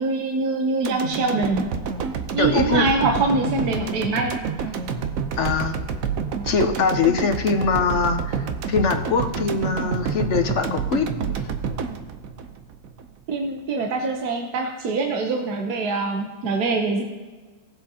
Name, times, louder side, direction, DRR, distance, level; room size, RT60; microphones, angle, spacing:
voice 1, 0.0-1.7 2.3-4.4 13.3-17.0, right 3 dB, 80° right, 2 dB, 1.5 m, -24 dB
sound 1, 0.8-13.1 13.4-13.5, right 6 dB, 65° right, 1.1 m, -28 dB
voice 2, 2.4-2.9 5.4-5.8 6.4-11.5, left 5 dB, 55° left, 7 dB, 1.0 m, -23 dB
18.5 x 7.5 x 2.8 m, 1.4 s
omnidirectional pair, 1.6 m